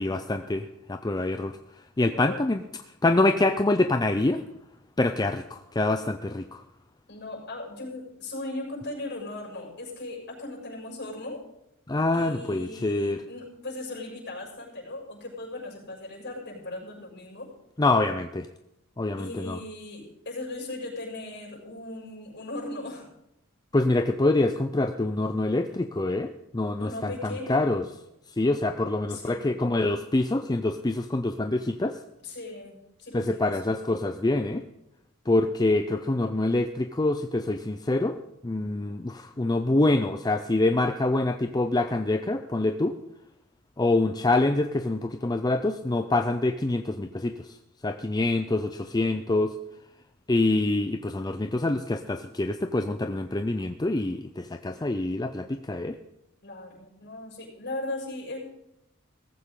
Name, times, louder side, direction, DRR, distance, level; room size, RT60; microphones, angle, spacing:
voice 1, 0.0-1.6 2.0-2.6 3.0-4.4 5.0-6.6 11.9-13.2 17.8-18.5 19.0-19.6 23.7-27.8 28.4-32.0 33.1-34.6 35.3-38.2 38.4-43.0 43.8-47.5 47.8-49.5 50.3-56.0, left 2 dB, 20° left, 7 dB, 0.5 m, -25 dB
voice 2, 2.0-2.5 7.1-11.4 12.1-17.5 19.2-23.1 26.8-27.8 29.1-29.6 32.2-33.8 56.4-58.4, left 2 dB, 55° left, -1 dB, 6.8 m, -38 dB
18.0 x 15.0 x 3.8 m, 0.85 s
head